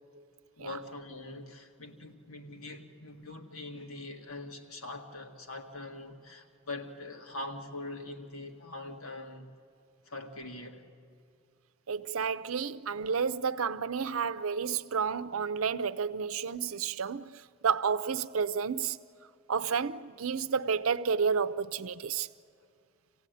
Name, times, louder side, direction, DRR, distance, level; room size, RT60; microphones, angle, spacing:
voice 1, 0.6-9.5 10.0-10.8, left 2 dB, 85° left, 1.8 m, -43 dB
voice 2, 11.9-17.3 17.6-19.0 19.5-22.3, right 6 dB, 85° right, 0.6 m, -31 dB
26.5 x 16.0 x 9.3 m
head